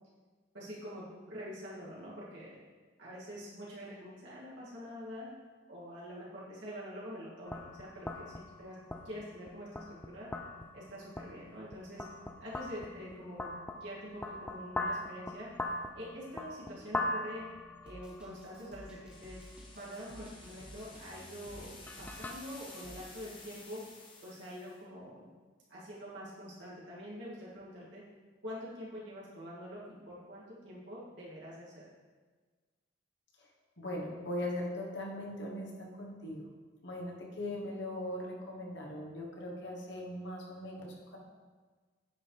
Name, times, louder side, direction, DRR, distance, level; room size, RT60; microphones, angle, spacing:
voice 1, 0.5-2.6 3.0-5.3 5.7-8.2 8.6-8.7 9.0-10.3 10.7-12.0 12.4-17.5 17.8-19.4 19.7-21.7 22.0-23.8 24.2-25.3 25.7-28.0 28.4-31.8 37.6-37.7, equal, 75° right, -7 dB, 2.4 m, -45 dB
sound 1, 7.4-22.3, left 1 dB, 10° left, 0.3 m, -42 dB
Drum kit, 17.9-23.3, right 1 dB, 5° right, 0.9 m, -53 dB
sound 2, 19.1-24.8, left 3 dB, 25° left, 1.0 m, -53 dB
voice 2, 33.8-36.5 36.8-41.2, left 1 dB, 65° left, -1 dB, 1.3 m, -40 dB
9.3 x 5.5 x 3.4 m, 1.4 s
head